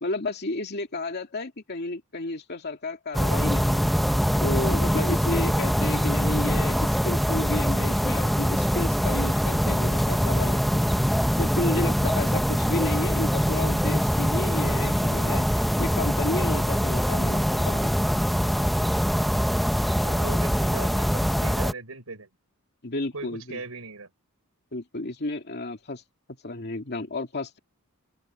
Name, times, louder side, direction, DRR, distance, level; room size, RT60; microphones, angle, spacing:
voice 1, 0.0-4.0 4.4-17.9 22.8-23.6 24.7-26.0 26.4-27.6, left 2 dB, 50° left, 2.6 m, -32 dB
sound 1, 3.1-21.7, equal, ahead, 0.9 m, -23 dB
voice 2, 20.0-22.3 23.1-24.1, right 3 dB, 70° right, 5.5 m, -39 dB
head